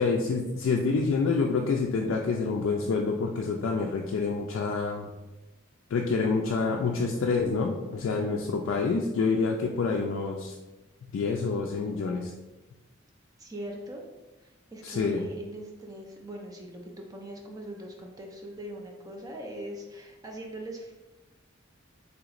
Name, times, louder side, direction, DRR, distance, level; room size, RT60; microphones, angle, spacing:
voice 1, 0.0-5.1 5.9-10.5 11.1-12.3 14.8-15.2, left 4 dB, 70° left, 1 dB, 0.3 m, -27 dB
voice 2, 8.0-8.4 13.4-14.0 14.4-20.9, right 1 dB, 20° right, 0 dB, 0.4 m, -41 dB
3.4 x 2.9 x 2.4 m, 1.1 s
head